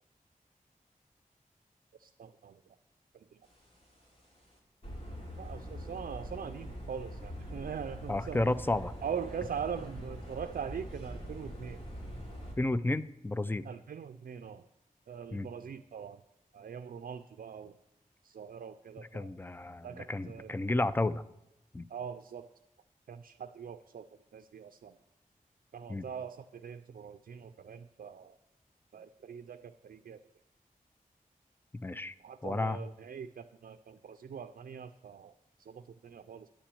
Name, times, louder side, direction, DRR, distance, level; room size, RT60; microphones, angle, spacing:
voice 1, 2.0-2.6 3.1-3.4 5.4-8.5 9.0-11.8 13.6-14.6 15.1-16.2 16.5-17.7 18.2-19.3 19.8-20.5 21.9-22.5 23.1-24.1 24.3-24.9 25.7-28.3 28.9-30.2 32.2-35.3 35.6-36.5, right 7 dB, 85° right, 9 dB, 0.4 m, -42 dB
sound 1, 3.6-3.9 4.4-4.5 4.8-12.5, equal, 40° left, 2.6 m, -43 dB
voice 2, 8.1-8.9 12.6-13.7 15.3-15.5 19.1-21.2 21.7-21.9 25.9-26.0 31.8-32.1 32.4-32.8, left 2 dB, 15° left, 15 dB, 0.4 m, -32 dB
9.9 x 5.9 x 8.3 m, 0.90 s
wide cardioid pair, 100°, 15 cm